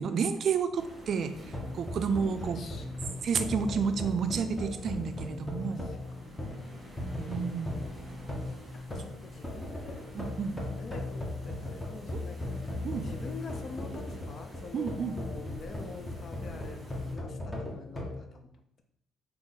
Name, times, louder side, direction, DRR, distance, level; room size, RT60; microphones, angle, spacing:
voice 1, 0.0-2.6 3.2-5.9 7.2-7.8 10.1-10.6 12.1-12.2 12.8-13.1 14.7-15.2, right 6 dB, 50° right, 10 dB, 0.4 m, -31 dB
sound 1, 0.7-17.2, equal, 20° right, 1.5 m, -52 dB
sound 2, 1.3-18.2, left 1 dB, 10° left, 0.9 m, -38 dB
voice 2, 2.4-3.3 5.6-8.0 8.7-10.2 10.7-18.5, left 4 dB, 45° left, 6 dB, 0.6 m, -47 dB
3.6 x 2.9 x 4.0 m, 0.75 s
cardioid pair, 120°, 0 cm